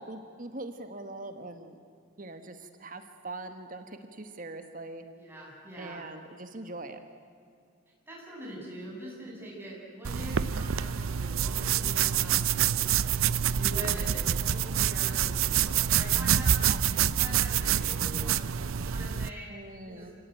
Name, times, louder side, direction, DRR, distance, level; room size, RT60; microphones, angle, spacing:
voice 1, 0.0-1.8 2.2-5.1 5.8-7.0 16.7-16.8 19.5-20.1, right 2 dB, 40° right, 8 dB, 1.4 m, -42 dB
voice 2, 5.2-6.0 8.1-13.1 13.5-19.5 19.9-20.1, right 1 dB, 10° right, -4 dB, 6.9 m, -43 dB
sound 1, 10.1-19.3, right 9 dB, 80° right, 0.6 m, -27 dB
27.5 x 18.0 x 9.1 m, 2.3 s
head